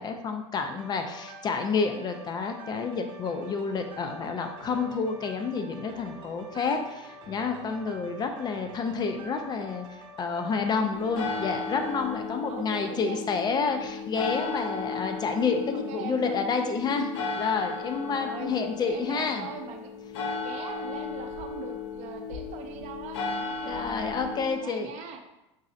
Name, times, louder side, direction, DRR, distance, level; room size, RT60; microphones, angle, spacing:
voice 1, 0.0-17.1 17.4-19.5 23.6-25.2, left 5 dB, 30° left, 5 dB, 0.4 m, -29 dB
sound 1, 0.7-12.1, right 1 dB, 35° right, 0.9 m, -47 dB
sound 2, 10.9-24.5, left 4 dB, 70° left, 0.6 m, -35 dB
voice 2, 11.3-11.7 12.5-13.2 15.7-16.4 18.1-18.5 18.8-19.9 20.4-23.9 24.6-25.2, right 6 dB, 50° right, 4 dB, 0.6 m, -41 dB
3.9 x 3.1 x 2.5 m, 0.91 s
hypercardioid pair, 100°, 15 cm